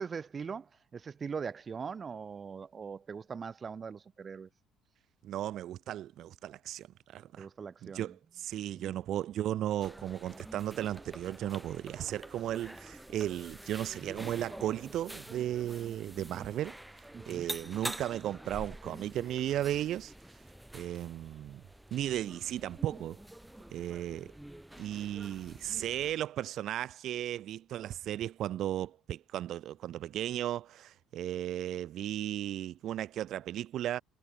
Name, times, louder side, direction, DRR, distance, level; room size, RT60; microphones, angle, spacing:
voice 1, 0.0-4.5 7.4-8.2 8.7-9.0 17.1-17.5, right 6 dB, 35° right, 3.7 m, -41 dB
voice 2, 5.2-7.5 7.8-16.7 17.3-20.1 20.7-21.6 21.9-23.2 23.7-24.3 24.8-34.0, right 12 dB, 60° right, 2.5 m, -35 dB
sound 1, 9.8-26.2, right 1 dB, 5° right, 5.4 m, -47 dB
cardioid pair, 100°, 0 cm